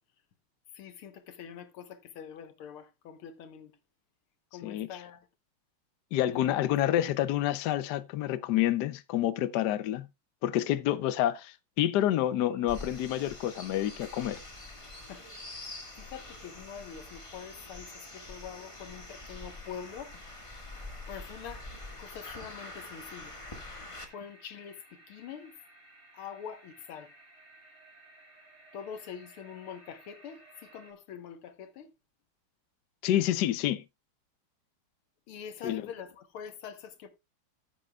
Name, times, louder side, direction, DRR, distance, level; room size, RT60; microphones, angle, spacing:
voice 1, 0.7-3.8 4.5-5.3 6.3-7.0 15.1-15.3 15.6-20.1 21.1-21.7 22.0-23.4 24.1-25.6 26.1-27.1 28.7-31.9 35.3-37.1, left 8 dB, 85° left, 2.0 m, -45 dB
voice 2, 6.1-10.1 10.4-14.4 33.0-33.8 35.6-35.8, left 12 dB, 65° left, 1.1 m, -28 dB
sound 1, 12.3-30.9, right 1 dB, 75° right, 4.0 m, -58 dB
sound 2, 12.7-24.0, left 2 dB, 15° left, 1.4 m, -45 dB
15.0 x 7.9 x 2.3 m
omnidirectional pair, 2.3 m